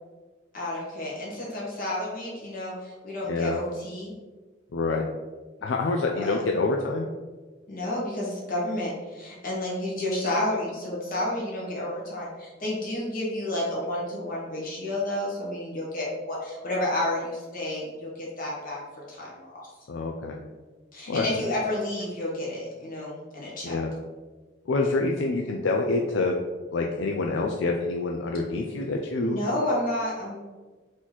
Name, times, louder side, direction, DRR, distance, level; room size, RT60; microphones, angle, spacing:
voice 1, 0.5-4.1 6.2-6.4 7.7-18.8 19.1-19.7 20.9-23.8 29.2-30.4, left 1 dB, 50° left, -5 dB, 1.5 m, -30 dB
voice 2, 3.3-3.6 4.7-5.0 5.6-7.1 19.9-20.4 21.1-21.4 23.6-23.9 24.7-26.4 26.7-29.4, left 3 dB, 75° left, 1 dB, 0.4 m, -26 dB
4.1 x 3.0 x 4.0 m, 1.3 s
head